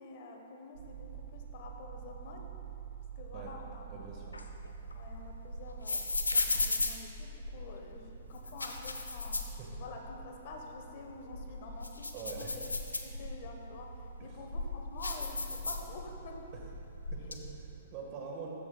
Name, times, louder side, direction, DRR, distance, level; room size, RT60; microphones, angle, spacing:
voice 1, 0.0-2.5 3.2-4.4 4.9-9.4 9.8-12.6 13.0-16.5, left 3 dB, 50° left, 2 dB, 1.0 m, -48 dB
sound 1, 0.7-17.8, right 5 dB, 80° right, 0.9 m, -48 dB
voice 2, 3.9-4.4 9.6-9.7 12.1-12.5 14.2-14.3 17.1-18.5, right 5 dB, 40° right, -1 dB, 1.3 m, -44 dB
sound 2, 4.3-7.8 8.3-10.2 10.5-10.6 11.1-13.5 14.1-16.3 16.5-17.3, left 3 dB, 90° left, 0.6 m, -36 dB
13.5 x 7.0 x 2.2 m, 2.7 s
figure-of-eight pair, 120°, 0 cm